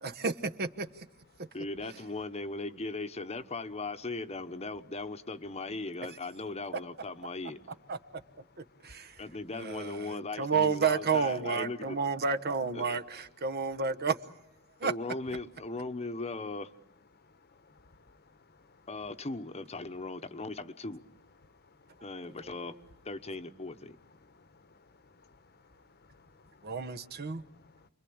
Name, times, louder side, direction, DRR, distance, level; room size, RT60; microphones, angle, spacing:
voice 1, 0.0-0.9 1.4-1.5 7.9-8.0 8.8-9.1 9.5-14.2 14.8-14.9 26.6-27.4, right 5 dB, 45° right, 1.1 m, -31 dB
voice 2, 1.5-7.6 9.2-12.0 12.7-13.0 14.8-16.7 18.9-21.0 22.0-22.7 23.0-24.0, left 3 dB, 30° left, 1.0 m, -38 dB
voice 3, 24.2-24.9 26.1-26.7 27.2-27.9, left 3 dB, 45° left, 1.1 m, -61 dB
29.5 x 22.5 x 8.7 m
head